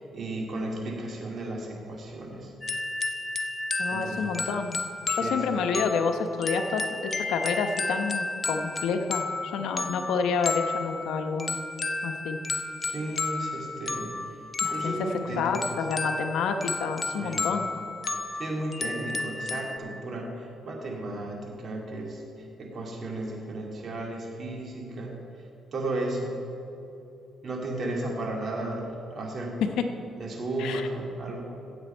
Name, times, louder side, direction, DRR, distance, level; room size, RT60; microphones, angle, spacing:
voice 1, 0.0-2.5 3.9-4.4 5.2-5.5 12.8-14.4 14.7-15.8 17.1-17.5 18.3-25.2 25.7-26.4 27.4-29.6 30.2-31.4, right 2 dB, 50° right, -1 dB, 2.4 m, -34 dB
sound 1, 2.6-19.8, left 3 dB, 30° left, 0.7 m, -32 dB
voice 2, 3.8-4.8 5.1-11.6 12.0-12.4 14.6-14.9 15.3-17.7 29.6-29.8 30.6-30.9, left 5 dB, 85° left, 6 dB, 0.9 m, -29 dB
15.5 x 8.0 x 4.4 m, 2.9 s
cardioid pair, 90°, 0 cm